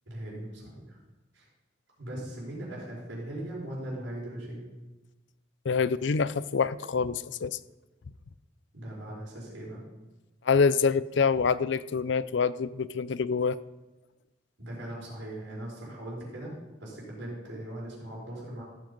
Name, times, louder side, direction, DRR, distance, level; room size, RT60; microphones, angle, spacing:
voice 1, 0.1-1.0 1.3-1.5 2.0-4.7 8.7-9.8 14.6-16.5 16.8-18.6, right 1 dB, 80° right, -4 dB, 4.7 m, -39 dB
voice 2, 5.6-7.6 10.5-13.6, left 5 dB, 70° left, 17 dB, 0.5 m, -26 dB
15.5 x 7.7 x 5.4 m, 1.1 s
head